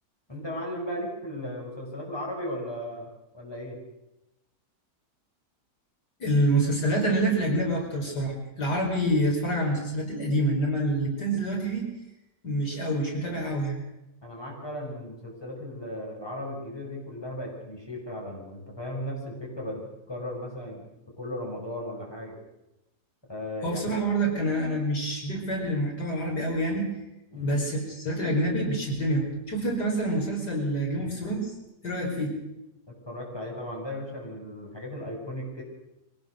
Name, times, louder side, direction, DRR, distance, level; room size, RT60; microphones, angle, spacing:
voice 1, 0.3-3.1 3.3-3.8 14.2-20.9 21.2-22.4 23.3-24.0 27.3-27.6 32.9-35.6, left 1 dB, 15° left, -1 dB, 5.9 m, -36 dB
voice 2, 6.2-11.9 12.4-13.8 23.6-26.9 27.4-31.5 31.8-32.3, right 1 dB, 85° left, -1 dB, 5.6 m, -27 dB
24.0 x 17.5 x 6.5 m, 0.94 s
omnidirectional pair, 1.7 m